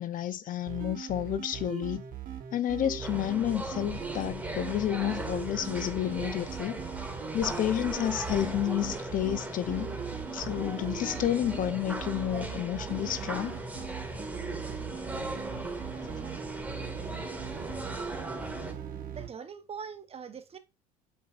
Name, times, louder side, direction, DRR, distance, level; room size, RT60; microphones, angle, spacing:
voice 1, 0.0-2.1 2.5-6.8 7.3-10.0 10.3-13.5, left 11 dB, 45° left, 0.8 m, -30 dB
sound 1, 0.7-19.3, right 8 dB, 50° right, 1.4 m, -40 dB
sound 2, 3.0-18.7, right 1 dB, 10° right, 1.9 m, -39 dB
voice 2, 19.1-20.6, right 6 dB, 35° right, 0.9 m, -42 dB
8.4 x 5.4 x 2.5 m
hypercardioid pair, 65°, 18 cm